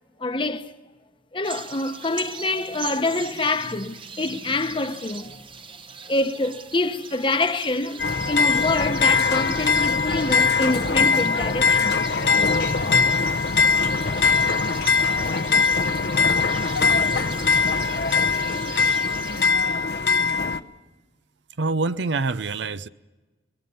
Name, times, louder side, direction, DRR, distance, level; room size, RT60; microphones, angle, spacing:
voice 1, 0.2-0.7 1.3-5.4 6.0-12.0, left 2 dB, 30° left, 1.0 m, -26 dB
sound 1, 1.4-19.5, right 6 dB, 30° right, 0.9 m, -40 dB
sound 2, 8.0-20.6, left 4 dB, 60° left, 0.8 m, -21 dB
sound 3, 10.5-20.6, left 4 dB, 90° left, 4.3 m, -42 dB
voice 2, 21.6-22.9, right 3 dB, 80° right, 0.7 m, -25 dB
25.0 x 21.5 x 7.0 m
head